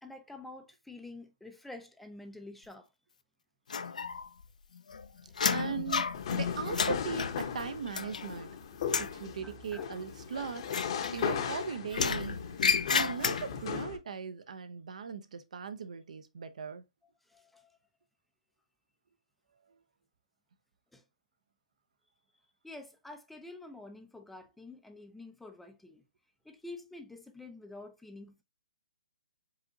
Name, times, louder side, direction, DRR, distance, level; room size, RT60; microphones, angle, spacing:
voice 1, 0.0-2.9 9.4-9.9 17.3-17.8 20.9-21.0 22.6-26.0 26.4-28.4, left 2 dB, 5° left, 0.4 m, -48 dB
sound 1, 3.7-4.5 4.7-8.5 8.8-9.2 10.6-11.5 11.9-13.7, left 6 dB, 75° left, 0.4 m, -32 dB
voice 2, 5.5-6.0 6.3-8.6 9.0-10.6 11.1-12.4 12.9-16.8 19.7-19.8, right 6 dB, 65° right, 0.6 m, -39 dB
sound 2, 6.1-14.0, left 7 dB, 45° left, 0.8 m, -37 dB
4.8 x 2.8 x 2.7 m
hypercardioid pair, 150°, 4 cm